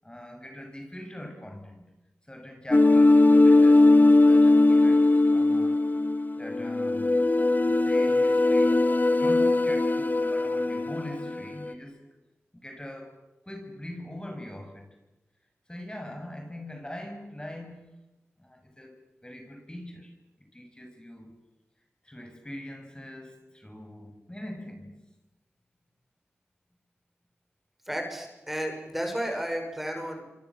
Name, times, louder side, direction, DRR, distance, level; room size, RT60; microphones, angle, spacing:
voice 1, 0.0-1.8 2.3-5.8 6.4-7.2 7.6-8.8 9.1-12.0 12.6-15.0 15.7-18.0 18.4-20.1 20.5-21.3 22.0-24.9, left 1 dB, 15° left, 4 dB, 7.1 m, -42 dB
sound 1, 2.7-11.7, left 2 dB, 35° left, 2.0 m, -20 dB
voice 2, 27.8-30.3, equal, 5° right, 4 dB, 6.6 m, -32 dB
26.5 x 26.5 x 7.7 m, 1.0 s
cardioid pair, 50°, 5 cm